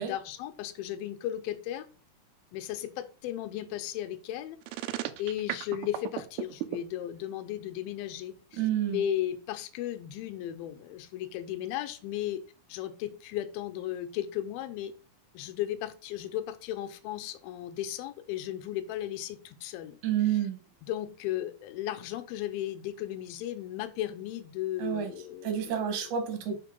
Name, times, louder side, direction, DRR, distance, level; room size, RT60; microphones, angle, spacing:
voice 1, 0.0-1.9 2.5-4.6 5.2-8.6 8.9-12.4 12.7-14.9 15.3-20.0 20.9-26.0 26.4-26.6, left 12 dB, 85° left, 9 dB, 2.4 m, -35 dB
sound 1, 4.6-6.8, right 14 dB, 85° right, 1.8 m, -34 dB
voice 2, 8.5-9.0 20.0-20.6 24.8-25.1 25.4-26.6, right 10 dB, 65° right, 5 dB, 2.3 m, -29 dB
5.4 x 3.7 x 5.2 m, 0.38 s
omnidirectional pair, 4.2 m